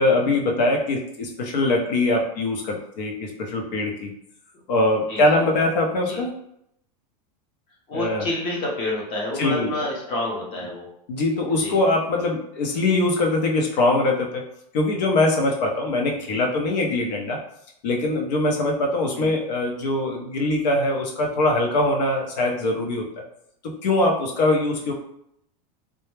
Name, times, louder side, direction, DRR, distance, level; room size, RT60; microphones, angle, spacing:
voice 1, 0.0-4.1 4.7-6.3 7.9-8.3 9.4-9.9 11.1-14.4 14.7-17.4 17.8-23.0 23.6-24.9, left 2 dB, 80° left, 1 dB, 0.7 m, -22 dB
voice 2, 7.9-10.9 11.6-11.8 16.3-16.4 19.1-19.3, left 2 dB, 25° left, -2 dB, 0.6 m, -29 dB
2.2 x 2.0 x 3.1 m, 0.75 s
supercardioid pair, 170°, 21 cm